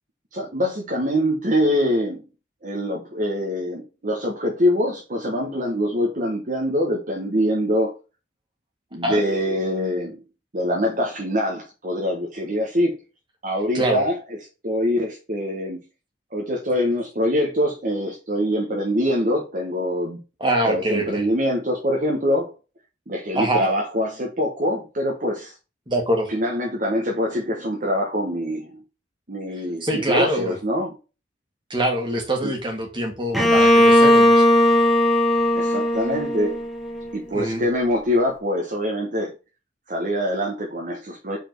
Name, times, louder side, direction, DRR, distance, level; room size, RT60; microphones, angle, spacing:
voice 1, 0.3-2.2 2.6-7.9 8.9-10.2 10.5-13.0 13.4-14.1 14.6-15.8 16.3-20.2 20.6-22.5 23.1-25.5 26.3-28.8 29.3-31.0 32.4-32.5 35.5-36.6 37.1-39.3 39.9-41.4, equal, 45° right, 1.3 m, -24 dB
voice 2, 20.4-21.3 23.3-23.7 25.9-26.3 29.8-30.5 31.7-34.5 37.3-37.6, right 1 dB, 25° right, 2.1 m, -24 dB
Bowed string instrument, 33.3-37.1, left 1 dB, ahead, 1.6 m, -17 dB
5.2 x 4.4 x 6.0 m
head